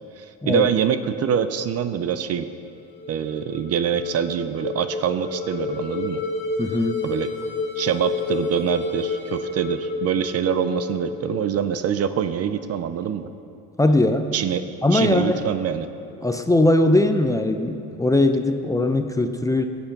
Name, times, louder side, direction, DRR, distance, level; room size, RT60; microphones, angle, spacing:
voice 1, 0.2-2.5 3.1-6.2 7.0-7.3 7.8-13.3 14.3-14.6 14.9-15.9, right 8 dB, 50° right, 11 dB, 0.6 m, -25 dB
sound 1, 2.8-12.0, left 3 dB, 35° left, 1.9 m, -30 dB
voice 2, 6.6-7.0 13.8-14.3 14.8-15.4 16.2-19.7, left 2 dB, 10° left, 7 dB, 0.6 m, -20 dB
16.0 x 7.1 x 5.9 m, 2.6 s
cardioid pair, 110°, 33 cm